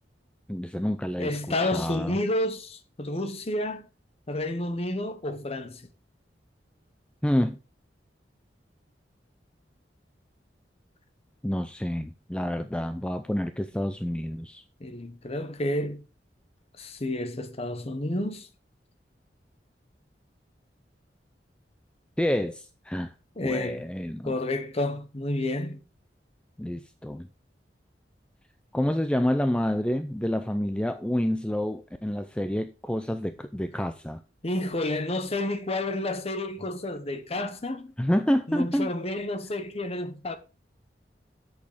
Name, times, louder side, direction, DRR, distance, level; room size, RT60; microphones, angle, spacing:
voice 1, 0.5-2.2 7.2-7.6 11.4-14.6 22.2-23.1 23.4-24.3 26.6-27.3 28.7-34.2 38.0-38.9, equal, 5° left, 0.5 m, -28 dB
voice 2, 1.2-3.9 4.3-5.8 14.8-16.0 16.8-18.5 23.4-23.8 24.2-25.8 34.4-37.9 38.5-40.4, left 1 dB, 35° left, 1.1 m, -30 dB
8.5 x 6.5 x 4.9 m
head